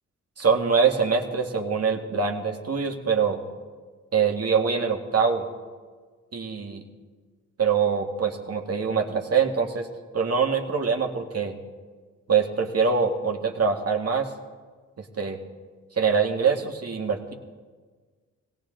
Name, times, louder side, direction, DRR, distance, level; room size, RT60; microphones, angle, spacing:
voice 1, 0.4-3.4 4.1-5.5 6.3-6.8 7.6-9.9 10.1-11.5 12.3-14.3 15.0-15.4 16.0-17.3, right 6 dB, 50° right, 2 dB, 2.0 m, -24 dB
20.0 x 17.0 x 3.9 m, 1.5 s
cardioid pair, 70°, 31 cm